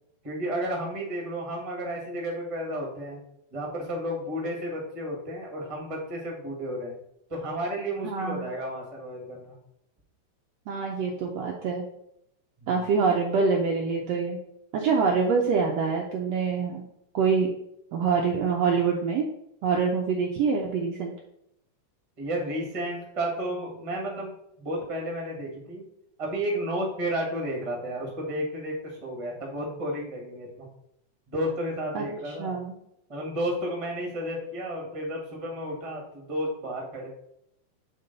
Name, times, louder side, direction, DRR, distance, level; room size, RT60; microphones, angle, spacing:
voice 1, 0.2-3.2 3.5-7.0 7.3-9.5 12.6-12.9 22.2-25.8 26.2-30.7 31.3-32.6 33.1-37.1, equal, 20° right, -1 dB, 1.0 m, -32 dB
voice 2, 8.0-8.5 10.7-11.9 12.7-14.4 14.7-16.8 17.1-17.5 17.9-19.2 19.6-21.1 31.9-32.8, right 5 dB, 75° right, 0 dB, 1.6 m, -25 dB
8.1 x 3.7 x 4.0 m, 0.77 s
omnidirectional pair, 3.6 m